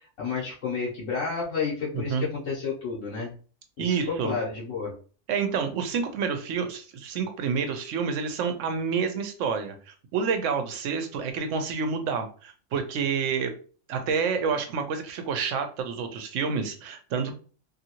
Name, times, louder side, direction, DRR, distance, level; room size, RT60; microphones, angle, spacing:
voice 1, 0.2-3.3 3.8-4.0 4.2-4.9, left 5 dB, 75° left, -5 dB, 1.1 m, -30 dB
voice 2, 1.9-2.3 3.8-4.3 5.3-13.5 13.9-17.3, right 6 dB, 75° right, 7 dB, 0.9 m, -28 dB
2.7 x 2.6 x 2.8 m, 0.39 s
omnidirectional pair, 1.3 m